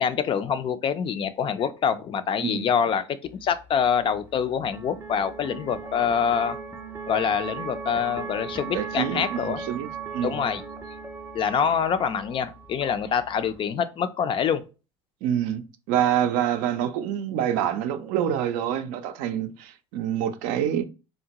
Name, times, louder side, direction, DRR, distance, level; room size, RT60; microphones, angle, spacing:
voice 1, 0.0-6.6 7.1-9.6 10.2-10.6 11.3-14.6, left 7 dB, 35° left, 0.4 m, -25 dB
sound 1, 3.3-13.6, right 5 dB, 15° right, 0.5 m, -38 dB
voice 2, 8.7-9.9 10.1-10.4 15.2-15.6 15.9-20.9, right 10 dB, 65° right, 0.4 m, -26 dB
3.7 x 2.1 x 2.8 m
hypercardioid pair, 75°, 14 cm